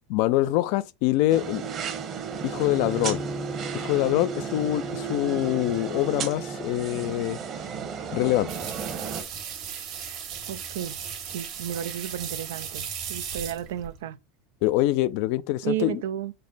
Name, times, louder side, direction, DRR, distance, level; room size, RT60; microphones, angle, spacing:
voice 1, 0.1-1.7 2.4-3.2 3.7-7.4 8.1-8.5 14.6-16.0, left 16 dB, 65° left, 0.4 m, -24 dB
sound 1, 1.3-9.2, right 7 dB, 40° right, 1.1 m, -34 dB
Bowed string instrument, 2.3-6.8, right 2 dB, 20° right, 0.6 m, -36 dB
sound 2, 8.5-14.0, right 8 dB, 60° right, 1.4 m, -36 dB
voice 2, 10.5-11.0 11.2-14.2 15.6-16.3, right 11 dB, 80° right, 0.4 m, -33 dB
5.3 x 2.1 x 4.0 m
hypercardioid pair, 95°, 0 cm